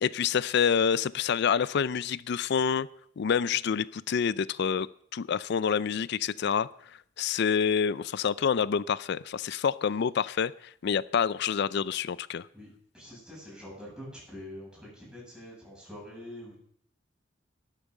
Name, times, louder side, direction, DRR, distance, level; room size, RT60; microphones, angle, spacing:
voice 1, 0.0-2.9 3.2-4.9 5.1-6.7 7.2-10.5 10.8-12.5, left 7 dB, 60° left, 18 dB, 0.4 m, -27 dB
voice 2, 12.5-16.6, left 1 dB, 5° right, -5 dB, 7.8 m, -45 dB
12.0 x 10.5 x 6.4 m, 0.66 s
head